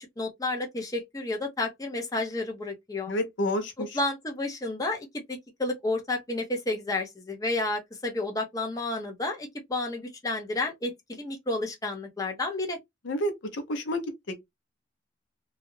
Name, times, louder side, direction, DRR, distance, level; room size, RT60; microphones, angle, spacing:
voice 1, 0.2-3.1 3.8-12.8, left 2 dB, 20° left, 0.6 m, -31 dB
voice 2, 3.1-4.0 13.0-14.4, left 1 dB, 70° left, 0.6 m, -30 dB
2.3 x 2.1 x 3.0 m
head